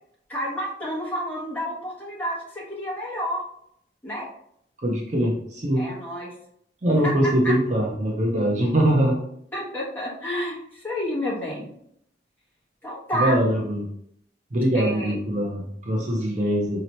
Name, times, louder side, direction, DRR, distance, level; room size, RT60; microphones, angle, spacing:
voice 1, 0.3-3.4 4.0-4.3 5.7-6.3 7.4-7.5 9.5-11.7 12.8-13.4 14.7-15.2, equal, 10° left, -7 dB, 1.4 m, -30 dB
voice 2, 4.8-5.9 6.8-9.2 13.1-13.9 14.5-16.8, right 1 dB, 40° right, -1 dB, 0.6 m, -22 dB
4.0 x 2.9 x 3.0 m, 0.69 s
head